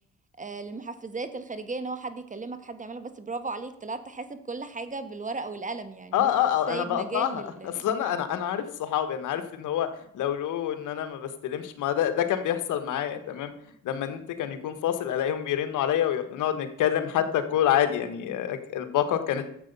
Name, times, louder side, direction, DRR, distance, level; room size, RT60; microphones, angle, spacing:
voice 1, 0.4-6.3 6.7-7.9, right 3 dB, 25° right, 10 dB, 1.4 m, -36 dB
voice 2, 6.1-9.9 10.1-13.5 13.8-19.5, left 10 dB, 80° left, 10 dB, 1.4 m, -27 dB
12.0 x 7.9 x 5.4 m, 0.73 s
cardioid pair, 90°, 30 cm